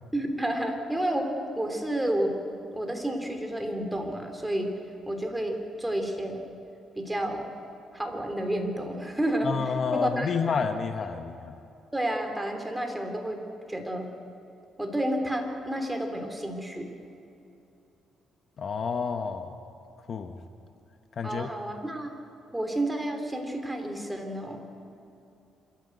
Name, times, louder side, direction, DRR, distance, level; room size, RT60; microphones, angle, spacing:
voice 1, 0.1-2.4 2.7-4.7 5.1-6.4 7.0-7.5 7.9-10.4 11.9-13.4 13.7-14.1 14.8-16.9 21.2-22.1 22.5-24.6, right 1 dB, 10° right, 4 dB, 3.4 m, -30 dB
voice 2, 9.4-11.6 18.6-19.5 20.1-20.4 21.2-21.5, left 5 dB, 50° left, 8 dB, 1.1 m, -29 dB
27.0 x 13.5 x 8.0 m, 2.7 s
cardioid pair, 90°, 0 cm